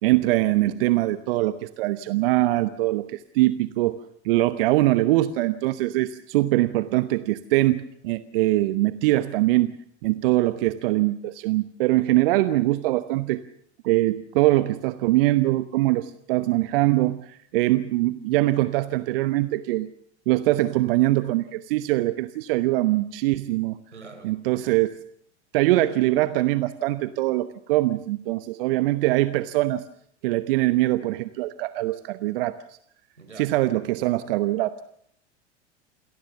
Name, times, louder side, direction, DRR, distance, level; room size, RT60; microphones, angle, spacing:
voice 1, 0.0-4.0 4.2-9.7 10.0-13.4 13.8-19.9 20.3-23.8 24.2-24.9 25.5-29.8 30.2-32.8 33.4-34.8, right 17 dB, 55° right, 14 dB, 1.1 m, -23 dB
voice 2, 23.9-24.4 33.2-33.5, right 4 dB, 85° right, 8 dB, 4.5 m, -44 dB
27.5 x 18.5 x 7.0 m, 0.68 s
figure-of-eight pair, 85°, 34 cm